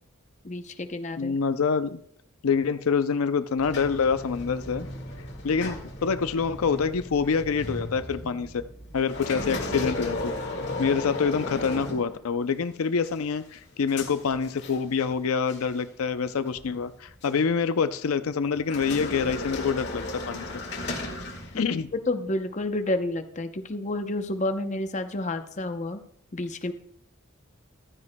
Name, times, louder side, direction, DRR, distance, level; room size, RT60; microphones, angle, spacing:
voice 1, 0.4-1.4 21.5-21.8 22.1-26.0 26.3-26.7, left 1 dB, 35° left, 8 dB, 0.7 m, -30 dB
voice 2, 1.2-2.0 2.4-4.9 5.4-8.6 8.9-10.3 10.8-20.5 21.5-21.9, left 5 dB, 85° left, 12 dB, 0.5 m, -26 dB
sound 1, 3.6-12.6 13.0-15.2 15.5-15.7 16.5-17.4 18.6-21.9, left 2 dB, 55° left, 1.9 m, -35 dB
14.5 x 12.5 x 2.2 m, 0.67 s
head